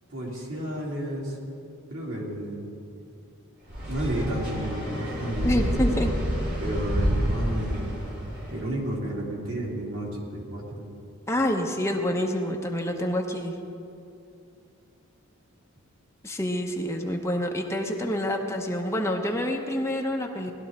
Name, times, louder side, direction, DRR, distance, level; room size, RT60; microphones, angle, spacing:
voice 1, 0.1-1.4 1.9-2.6 3.9-5.7 6.6-7.9 8.5-10.8, right 1 dB, 75° right, -4 dB, 3.0 m, -32 dB
sound 1, 3.7-8.6, equal, 50° right, 3.0 m, -28 dB
voice 2, 5.4-6.1 11.3-13.6 16.2-20.5, left 1 dB, 15° left, 1 dB, 0.9 m, -27 dB
19.0 x 12.5 x 3.7 m, 2.6 s
head